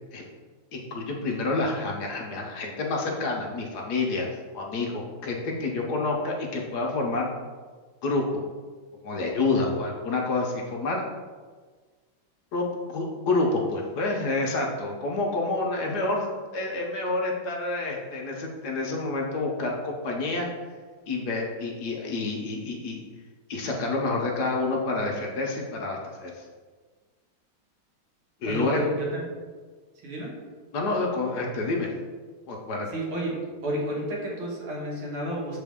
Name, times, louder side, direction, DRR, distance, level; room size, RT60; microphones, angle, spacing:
voice 1, 0.7-4.3 4.5-7.3 8.0-8.4 9.0-11.0 12.5-12.7 12.9-20.5 21.1-23.0 23.5-26.4 28.4-28.8 30.7-31.9 32.5-32.9, left 3 dB, 65° left, -1 dB, 1.0 m, -28 dB
voice 2, 28.5-29.3 30.0-30.3 32.9-33.4 33.6-35.6, right 1 dB, 75° right, -4 dB, 2.2 m, -31 dB
6.8 x 4.1 x 3.5 m, 1.5 s
omnidirectional pair, 2.4 m